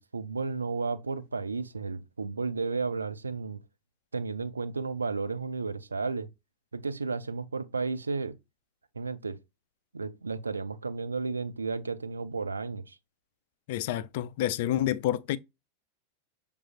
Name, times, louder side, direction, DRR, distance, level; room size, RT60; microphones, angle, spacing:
voice 1, 0.0-3.6 4.1-6.3 6.7-8.4 9.0-9.4 9.9-13.0, right 4 dB, 75° right, 0.5 m, -33 dB
voice 2, 13.7-15.4, left 12 dB, 50° left, 0.4 m, -28 dB
6.2 x 3.4 x 2.4 m
figure-of-eight pair, 90°, 0 cm